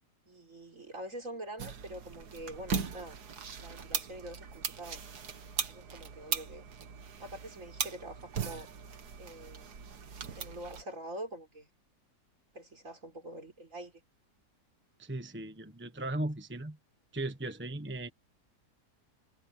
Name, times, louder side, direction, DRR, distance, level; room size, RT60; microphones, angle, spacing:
voice 1, 0.3-3.2 3.6-5.0 5.7-6.6 7.2-8.7 9.2-9.7 10.3-11.7 12.5-13.9, right 1 dB, 55° right, 5.0 m, -45 dB
sound 1, 1.6-10.8, right 6 dB, 80° right, 2.1 m, -39 dB
voice 2, 15.0-16.8 17.1-18.1, right 2 dB, 10° right, 1.2 m, -37 dB
omnidirectional pair, 1.7 m